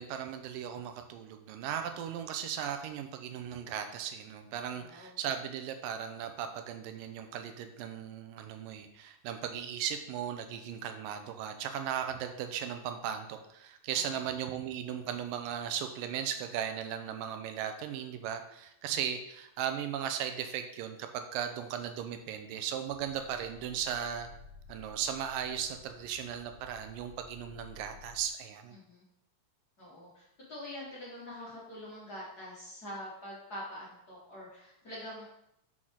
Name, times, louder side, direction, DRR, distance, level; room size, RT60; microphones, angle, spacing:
voice 1, 0.0-24.3 24.7-28.8, right 9 dB, 90° right, 7 dB, 2.3 m, -37 dB
voice 2, 4.8-5.2 13.9-14.3 28.7-29.0 29.8-35.3, left 1 dB, 35° left, -7 dB, 1.8 m, -45 dB
sound 1, 22.9-28.3, left 5 dB, 80° left, 2.1 m, -54 dB
6.2 x 6.2 x 3.8 m, 0.79 s
omnidirectional pair, 3.9 m